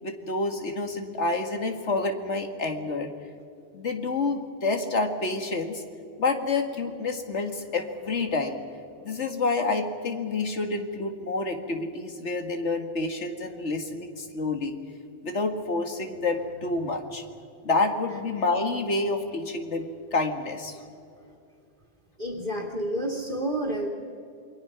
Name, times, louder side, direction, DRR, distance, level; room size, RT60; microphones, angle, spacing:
voice 1, 0.0-3.1 3.7-5.8 6.2-8.6 9.0-14.7 15.2-17.2 17.6-20.8, left 3 dB, 75° left, 5 dB, 2.2 m, -28 dB
voice 2, 22.2-23.9, right 1 dB, 45° right, -2 dB, 2.4 m, -29 dB
28.0 x 22.0 x 5.9 m, 2.5 s
omnidirectional pair, 1.2 m